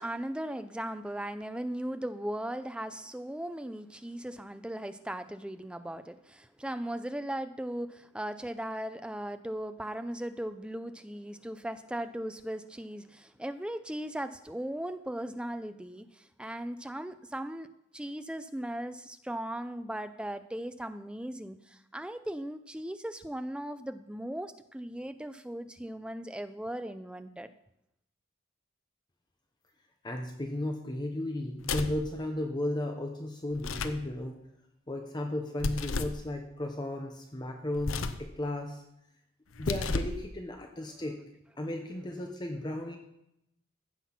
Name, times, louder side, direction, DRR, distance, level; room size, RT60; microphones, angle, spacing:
voice 1, 0.0-17.7 17.9-27.5, right 1 dB, 5° right, 10 dB, 0.4 m, -38 dB
voice 2, 30.0-34.4 34.9-38.8 39.6-41.2 41.6-43.0, left 1 dB, 20° left, 3 dB, 0.8 m, -35 dB
sound 1, 31.6-32.1 33.5-34.1 35.6-36.2 37.8-38.3 39.5-40.2, left 3 dB, 85° left, 0.7 m, -33 dB
15.0 x 5.9 x 5.8 m, 0.81 s
head